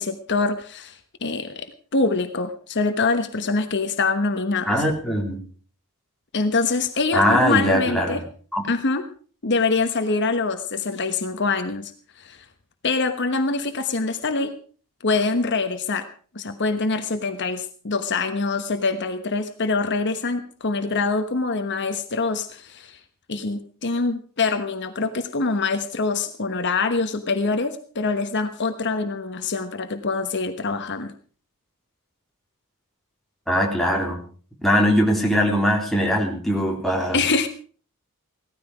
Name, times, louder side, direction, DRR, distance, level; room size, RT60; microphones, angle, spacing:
voice 1, 0.0-4.8 6.3-8.2 8.7-9.0 9.4-12.4 12.8-14.5 15.0-16.1 16.3-23.0 23.3-31.1 37.1-37.5, left 3 dB, 50° left, 8 dB, 1.2 m, -24 dB
voice 2, 4.7-5.4 7.1-8.2 8.5-8.6 33.5-34.2 34.6-37.2, equal, ahead, -1 dB, 3.6 m, -21 dB
17.5 x 13.5 x 4.9 m, 0.43 s
head